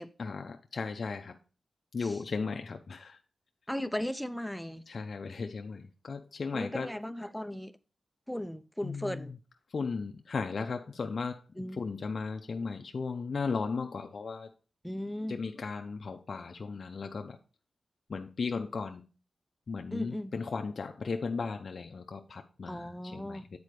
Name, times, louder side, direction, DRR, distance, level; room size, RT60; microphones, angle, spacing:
voice 1, 0.2-1.4 1.9-3.2 4.9-6.9 8.8-9.3 9.7-11.4 11.8-14.5 15.3-17.4 18.1-19.0 19.7-23.4, left 4 dB, 60° left, 0.5 m, -36 dB
voice 2, 3.7-4.8 6.5-7.8 8.3-9.3 11.6-11.8 14.8-15.4 19.9-20.3 22.7-23.4, left 1 dB, 5° left, 0.5 m, -37 dB
8.2 x 4.2 x 4.8 m
wide cardioid pair, 85°, 0 cm